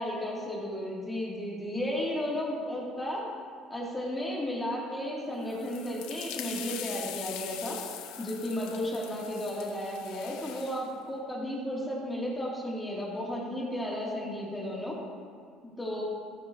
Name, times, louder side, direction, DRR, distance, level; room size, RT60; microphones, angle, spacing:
voice 1, 0.0-3.2 3.7-7.8 8.2-15.0 15.8-16.0, left 1 dB, 15° left, -4 dB, 2.5 m, -34 dB
sound 1, 5.4-10.9, left 10 dB, 85° left, 0.8 m, -42 dB
15.0 x 9.2 x 2.8 m, 2.2 s
cardioid pair, 105°, 0 cm